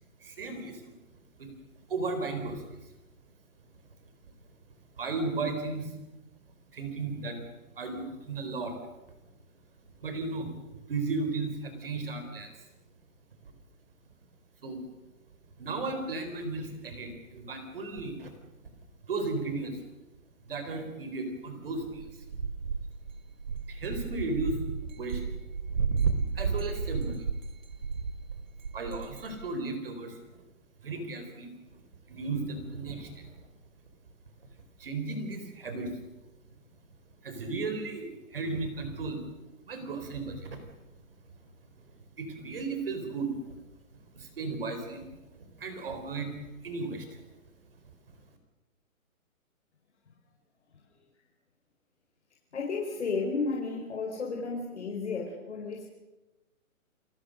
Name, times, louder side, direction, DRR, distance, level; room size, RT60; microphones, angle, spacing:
voice 1, 0.2-0.9 1.4-1.5 1.9-2.9 5.0-6.0 6.7-8.8 10.0-10.5 10.9-12.5 14.6-14.8 15.6-18.3 19.0-19.8 20.5-22.2 23.7-24.6 24.9-25.3 25.7-25.8 26.3-27.2 28.7-30.5 30.8-31.5 32.1-33.4 34.8-35.9 37.2-39.2 39.7-40.7 42.2-43.6 43.9-45.1 45.6-47.2, right 3 dB, 40° right, 7 dB, 4.3 m, -35 dB
sound 1, 21.9-29.5, right 5 dB, 70° right, 2.7 m, -32 dB
voice 2, 52.5-55.8, left 4 dB, 50° left, -2 dB, 4.8 m, -33 dB
30.0 x 18.0 x 6.5 m, 1.0 s
hypercardioid pair, 180°, 42 cm